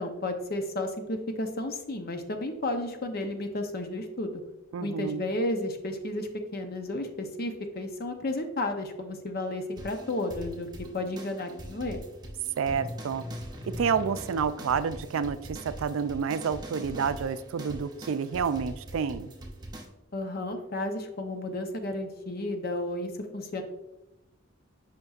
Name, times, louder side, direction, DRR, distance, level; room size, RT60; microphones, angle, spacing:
voice 1, 0.0-4.4 4.8-10.7 10.9-12.0 20.1-23.6, left 1 dB, 50° left, 6 dB, 0.7 m, -32 dB
voice 2, 4.7-5.2 12.6-13.2 13.8-19.3, right 6 dB, 80° right, 13 dB, 0.4 m, -29 dB
sound 1, 9.8-19.9, equal, 20° right, 0.8 m, -42 dB
7.9 x 5.2 x 2.4 m, 0.94 s
head